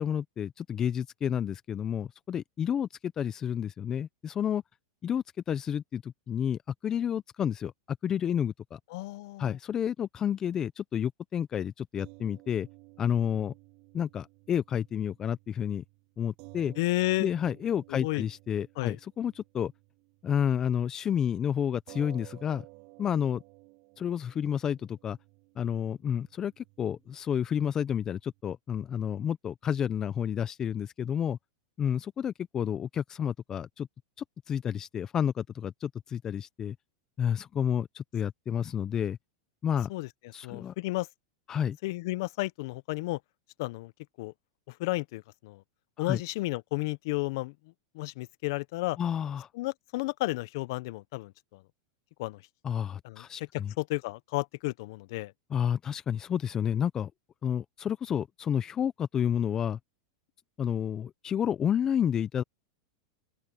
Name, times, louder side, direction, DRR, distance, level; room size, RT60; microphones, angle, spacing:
voice 1, 0.0-4.6 5.0-8.8 9.4-12.7 13.0-13.5 13.9-15.8 16.2-16.7 17.2-19.7 20.2-22.6 23.0-23.4 24.0-25.2 25.6-31.4 31.8-33.9 34.5-36.8 37.2-39.2 39.6-39.9 40.3-40.7 41.5-41.8 46.0-46.2 49.0-49.5 52.6-53.7 55.5-57.1 57.4-59.8 60.6-62.4, left 9 dB, 25° left, 0.6 m, -30 dB
voice 2, 8.9-9.6 16.8-17.3 18.0-18.2 18.8-19.0 39.9-40.1 40.4-41.1 41.8-43.2 43.6-43.9 44.2-44.3 44.7-45.6 46.0-47.5 47.9-49.0 49.5-51.6 52.2-52.4 53.0-53.2 53.8-55.3, left 21 dB, 60° left, 0.7 m, -32 dB
sound 1, 12.0-20.5 20.8-21.0 21.9-28.4, right 32 dB, 50° right, 7.8 m, -55 dB
open air
supercardioid pair, 130°, 2 cm